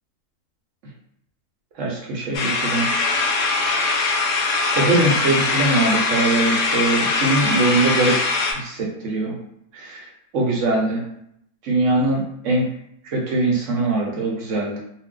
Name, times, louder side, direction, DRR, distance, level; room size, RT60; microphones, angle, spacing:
voice 1, 1.8-2.9 3.9-4.2 4.7-8.2 8.5-9.4 9.7-10.1 10.3-11.0 11.6-12.7 13.0-14.8, right 2 dB, 65° right, -1 dB, 0.8 m, -22 dB
sound 1, 2.3-8.5, left 3 dB, 65° left, 0.8 m, -21 dB
2.5 x 2.0 x 3.6 m, 0.76 s
omnidirectional pair, 1.6 m